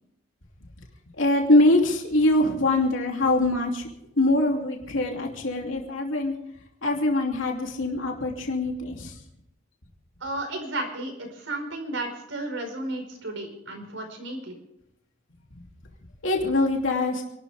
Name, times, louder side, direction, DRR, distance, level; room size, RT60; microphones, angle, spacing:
voice 1, 1.2-3.9 4.2-6.4 6.8-9.1 16.2-17.2, left 2 dB, 85° left, 1 dB, 3.0 m, -23 dB
voice 2, 10.2-14.6, right 2 dB, 75° right, 3 dB, 4.9 m, -33 dB
28.5 x 12.5 x 3.5 m, 0.81 s
head